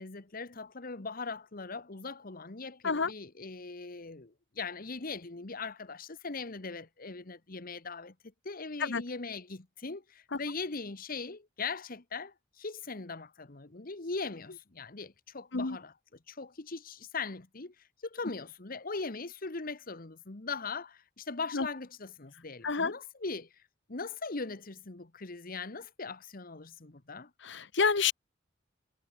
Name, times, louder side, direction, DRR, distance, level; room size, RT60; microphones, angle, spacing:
voice 1, 0.0-8.1 8.4-16.0 16.3-23.6 23.9-27.3, left 4 dB, 50° left, 1.3 m, -40 dB
voice 2, 27.5-28.1, left 5 dB, 65° left, 1.1 m, -28 dB
head